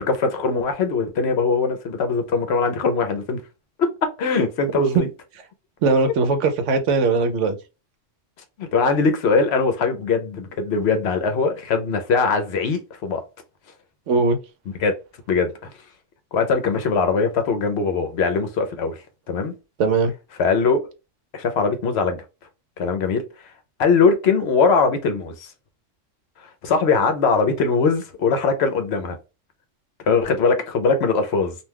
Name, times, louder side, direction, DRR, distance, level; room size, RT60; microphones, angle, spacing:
voice 1, 0.2-3.4 3.8-3.9 4.2-5.1 8.6-13.2 14.8-14.9 15.3-15.5 16.3-19.0 19.3-19.5 20.4-20.8 21.3-22.2 22.8-23.2 23.8-25.5 26.6-29.2 30.1-31.6, left 4 dB, 65° left, 0.8 m, -21 dB
voice 2, 5.8-7.6 14.1-14.4 19.8-20.1, right 4 dB, 75° right, 0.9 m, -19 dB
2.4 x 2.2 x 3.3 m
omnidirectional pair, 1.3 m